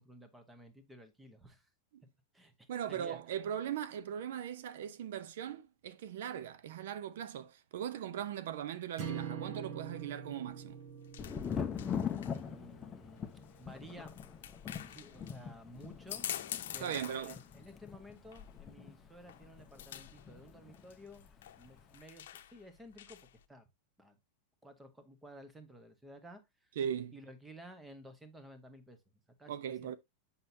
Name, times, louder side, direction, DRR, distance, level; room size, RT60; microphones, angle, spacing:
voice 1, 0.0-1.7 2.3-3.2 12.3-13.2 13.6-14.1 14.6-16.2 16.7-21.3 21.6-23.7 24.0-24.2 24.6-26.7 27.1-29.0 29.4-30.0, equal, 5° right, 0.9 m, -54 dB
voice 2, 2.7-10.8 16.8-17.4 26.8-27.1 29.5-29.9, right 9 dB, 70° right, 0.5 m, -39 dB
sound 1, 9.0-13.3, right 8 dB, 50° right, 1.5 m, -44 dB
sound 2, 10.5-23.4, left 11 dB, 80° left, 0.7 m, -48 dB
Thunder, 11.2-20.8 21.1-21.8, left 7 dB, 15° left, 0.6 m, -42 dB
7.7 x 5.6 x 2.7 m
supercardioid pair, 160°, 0 cm